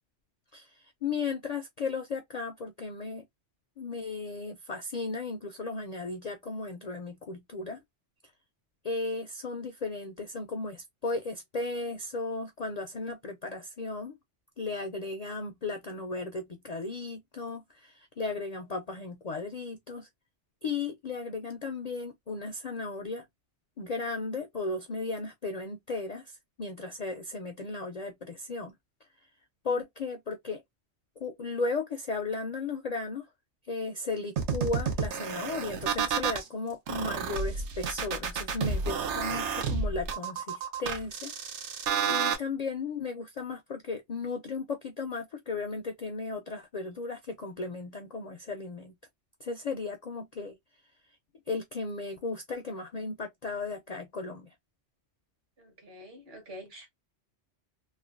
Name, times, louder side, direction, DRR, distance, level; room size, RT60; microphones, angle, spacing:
voice 1, 0.5-3.2 3.8-7.8 8.8-14.1 14.6-20.1 20.6-23.2 23.8-28.7 29.6-30.6 31.2-33.3 33.7-41.3 42.1-48.9 49.4-50.6 51.5-54.5, left 3 dB, 55° left, 0.4 m, -35 dB
sound 1, 34.4-36.4 36.9-42.4, right 6 dB, 75° right, 1.0 m, -30 dB
voice 2, 55.6-56.9, equal, 55° right, 1.4 m, -47 dB
3.1 x 2.2 x 2.4 m
omnidirectional pair, 1.2 m